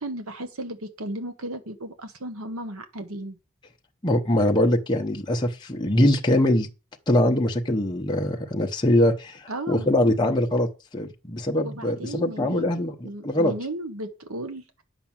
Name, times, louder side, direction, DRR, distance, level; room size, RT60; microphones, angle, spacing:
voice 1, 0.0-3.4 9.5-9.9 11.6-14.6, right 1 dB, 80° right, 1.1 m, -35 dB
voice 2, 4.0-6.7 7.1-13.5, left 1 dB, 20° left, 0.8 m, -23 dB
9.8 x 6.0 x 7.3 m
head